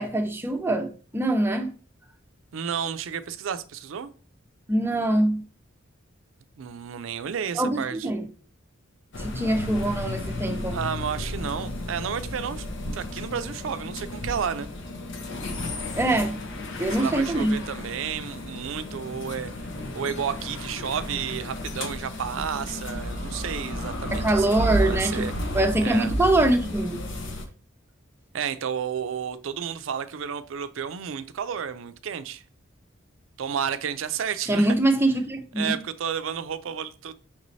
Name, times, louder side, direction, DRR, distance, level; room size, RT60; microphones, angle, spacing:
voice 1, 0.0-1.7 4.7-5.4 7.6-8.2 9.2-10.8 15.9-16.4 16.8-17.6 24.1-25.3 25.5-27.0 34.5-35.8, right 1 dB, 10° right, 0.6 m, -23 dB
voice 2, 2.5-4.1 6.6-8.1 10.7-12.6 12.9-14.7 16.9-19.5 19.9-25.5 25.8-26.2 28.3-32.4 33.4-34.8 35.6-37.1, right 7 dB, 75° right, 0.4 m, -31 dB
sound 1, 9.1-27.5, left 1 dB, 65° left, 0.7 m, -33 dB
5.8 x 3.1 x 2.6 m
head